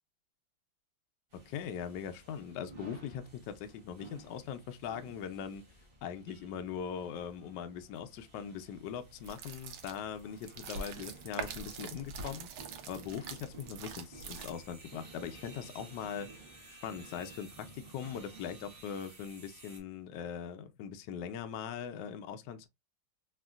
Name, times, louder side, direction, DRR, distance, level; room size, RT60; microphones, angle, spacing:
sound 1, 1.3-19.8, right 3 dB, 40° right, 0.8 m, -54 dB
voice 1, 1.5-5.6 6.0-12.5 12.9-16.3 16.8-22.7, left 8 dB, 75° left, 1.0 m, -41 dB
sound 2, 9.2-14.9, right 5 dB, 75° right, 1.4 m, -44 dB
3.6 x 2.5 x 2.3 m
omnidirectional pair, 2.3 m